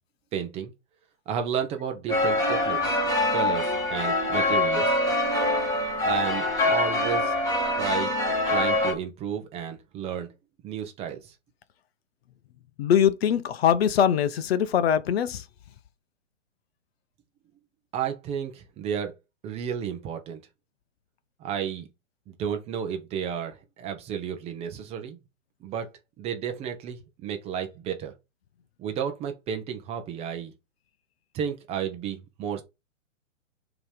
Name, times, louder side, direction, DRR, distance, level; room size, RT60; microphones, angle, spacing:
voice 1, 0.3-0.7 1.3-3.0 3.3-5.0 6.0-7.3 7.8-8.1 8.5-10.3 10.6-11.3 17.9-19.1 19.4-20.4 21.4-21.9 22.3-25.2 25.6-25.9 26.2-28.1 28.8-30.5 31.3-32.6, right 8 dB, 15° right, 0.7 m, -32 dB
sound 1, 2.1-8.9, left 2 dB, 10° left, 1.6 m, -24 dB
voice 2, 12.8-15.4, left 9 dB, 50° left, 0.8 m, -22 dB
6.9 x 3.0 x 5.2 m
hypercardioid pair, 130°, 39 cm